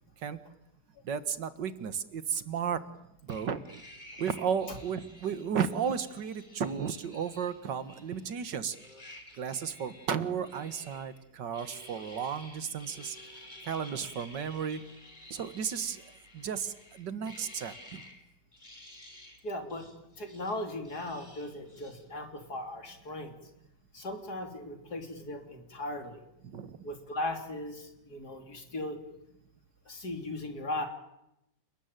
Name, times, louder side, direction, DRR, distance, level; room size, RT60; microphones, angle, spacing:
voice 1, 1.1-2.8 3.3-3.6 4.2-8.8 9.4-13.2 13.7-14.8 15.3-16.0 16.3-18.0 26.5-26.8, right 7 dB, 90° right, 12 dB, 2.1 m, -34 dB
sound 1, 3.3-8.4 8.7-11.2 11.5-18.2 18.5-19.4 19.7-22.1, left 1 dB, 25° left, 4.2 m, -52 dB
voice 2, 19.4-19.9 20.2-23.3 23.9-26.2 26.8-29.0 29.9-30.9, left 1 dB, 65° left, 5 dB, 3.9 m, -37 dB
29.5 x 20.0 x 9.1 m, 0.84 s
omnidirectional pair, 1.8 m